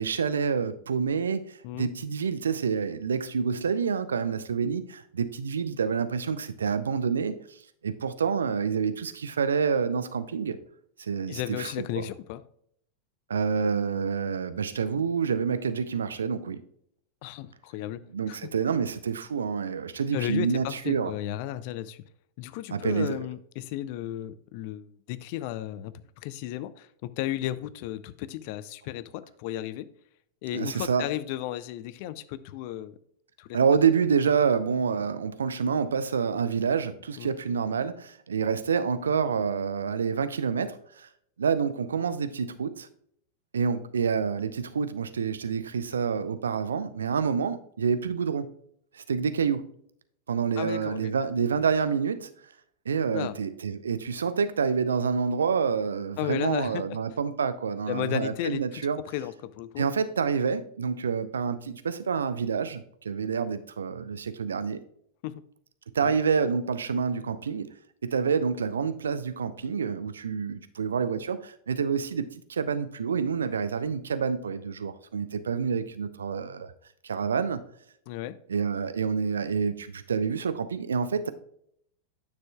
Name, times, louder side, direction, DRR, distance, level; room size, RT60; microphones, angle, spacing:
voice 1, 0.0-10.6 11.0-12.0 13.3-16.6 18.1-21.1 22.7-23.2 30.5-31.1 33.5-41.1 41.4-42.9 43.5-48.5 48.9-49.7 50.3-52.3 52.9-59.0 59.8-64.8 65.9-67.7 68.0-76.7 77.0-77.6 78.5-81.3, right 6 dB, 70° right, 13 dB, 0.5 m, -28 dB
voice 2, 11.3-12.4 17.2-18.0 18.3-18.4 20.1-22.0 22.4-29.9 30.4-33.0 33.4-33.6 37.2-37.3 50.6-51.1 53.1-53.4 56.2-56.8 57.9-59.9 65.2-65.3 66.0-66.2 78.1-78.4, left 13 dB, 45° left, 15 dB, 0.4 m, -34 dB
9.5 x 6.7 x 2.3 m, 0.68 s
figure-of-eight pair, 90°, 0 cm